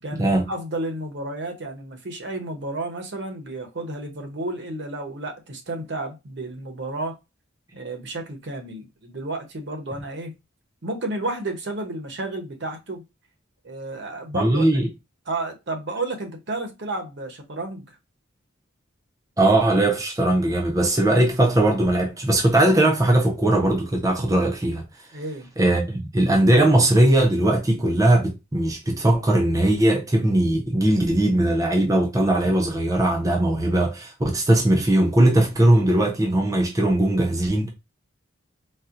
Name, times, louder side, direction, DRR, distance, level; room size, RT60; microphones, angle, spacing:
voice 1, 0.0-7.2 7.7-10.3 10.8-13.0 13.6-14.7 15.3-17.9 25.1-25.5, right 2 dB, 60° right, 0.8 m, -32 dB
voice 2, 14.3-14.9 19.4-24.8 25.6-37.7, right 1 dB, 15° right, 0.5 m, -19 dB
4.1 x 2.0 x 2.5 m
head